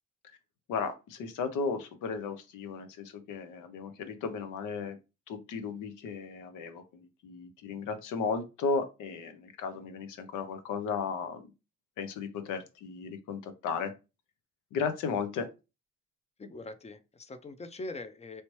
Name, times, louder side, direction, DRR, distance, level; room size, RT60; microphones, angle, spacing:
voice 1, 0.7-5.0 5.3-6.8 7.2-11.5 12.0-13.9 14.7-15.5, left 5 dB, 85° left, 0.8 m, -35 dB
voice 2, 16.4-18.4, left 2 dB, 20° left, 0.5 m, -42 dB
3.2 x 2.8 x 3.1 m
cardioid pair, 90°, 30 cm